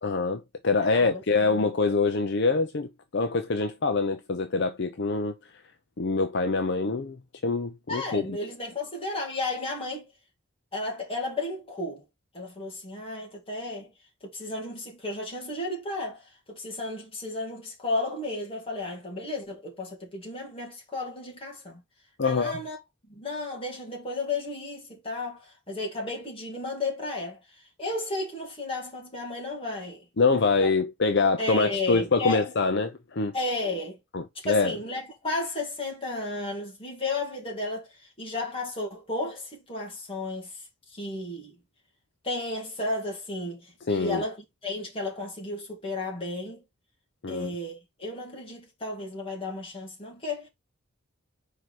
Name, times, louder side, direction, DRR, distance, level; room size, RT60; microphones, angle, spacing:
voice 1, 0.0-5.3 6.0-7.2 7.4-8.2 22.2-22.6 30.2-33.3 34.1-34.7 43.9-44.2 47.2-47.5, left 4 dB, 55° left, 0.6 m, -25 dB
voice 2, 0.8-1.6 7.9-10.1 10.7-12.0 12.3-13.9 14.2-21.8 22.2-22.8 23.1-30.1 30.6-30.7 31.4-32.5 33.3-34.0 34.3-41.5 42.2-44.4 44.6-46.6 47.3-50.5, left 2 dB, 25° left, 2.4 m, -33 dB
5.0 x 4.6 x 4.1 m
head